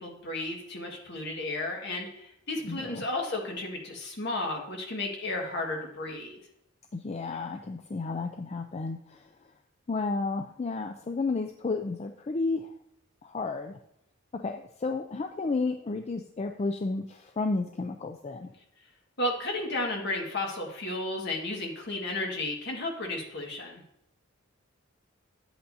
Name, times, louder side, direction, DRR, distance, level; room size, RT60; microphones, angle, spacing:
voice 1, 0.0-6.4 19.2-23.8, left 2 dB, 55° left, 0 dB, 1.7 m, -33 dB
voice 2, 2.6-3.1 6.9-9.3 9.9-12.7 13.2-13.8 14.3-18.5, left 3 dB, 30° left, 6 dB, 0.4 m, -32 dB
10.5 x 7.9 x 2.7 m, 0.77 s
head